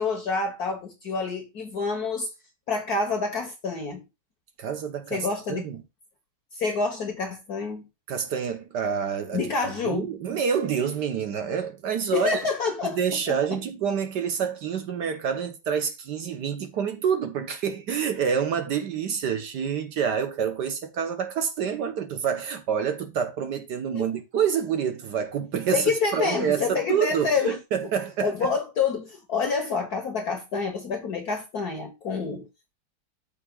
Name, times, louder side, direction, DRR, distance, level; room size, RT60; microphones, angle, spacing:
voice 1, 0.0-2.3 2.7-4.0 5.1-5.7 6.5-7.8 9.3-10.1 12.1-13.0 13.3-13.4 23.9-24.0 25.7-27.6 28.2-32.5, left 4 dB, 50° left, 1.6 m, -27 dB
voice 2, 4.6-5.8 8.1-9.5 9.8-12.3 12.8-28.5, right 7 dB, 60° right, 1.3 m, -27 dB
13.5 x 5.8 x 2.3 m
omnidirectional pair, 2.4 m